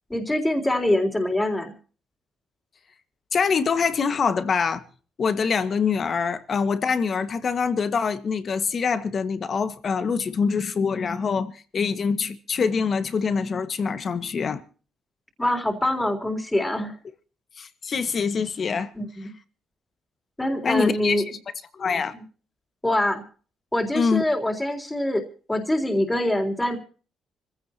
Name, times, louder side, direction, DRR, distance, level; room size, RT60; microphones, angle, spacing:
voice 1, 0.1-1.7 15.4-17.0 19.0-19.3 20.4-21.3 22.1-22.2 22.8-23.2 23.7-25.2 25.5-26.8, left 1 dB, 10° left, 3.6 m, -24 dB
voice 2, 3.3-4.8 5.2-14.6 17.6-18.9 20.6-21.4 21.7-22.1 23.9-24.2, left 5 dB, 45° left, 1.8 m, -24 dB
25.5 x 16.0 x 3.0 m
cardioid pair, 90°, 0 cm